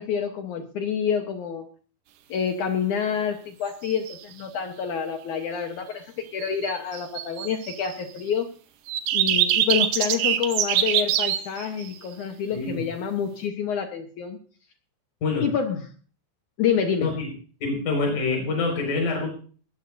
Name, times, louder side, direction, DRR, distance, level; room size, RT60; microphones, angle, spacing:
voice 1, 0.0-1.6 2.3-8.5 9.1-14.4 15.4-15.8 16.6-17.1, left 7 dB, 75° left, 6 dB, 1.8 m, -27 dB
sound 1, 3.8-4.3 6.4-8.2 8.9-12.0, right 11 dB, 90° right, 1.8 m, -24 dB
voice 2, 12.5-12.9 15.2-15.5 17.0-17.3 17.6-19.3, left 3 dB, 50° left, 2 dB, 6.3 m, -26 dB
20.5 x 14.0 x 2.6 m, 0.41 s
omnidirectional pair, 5.0 m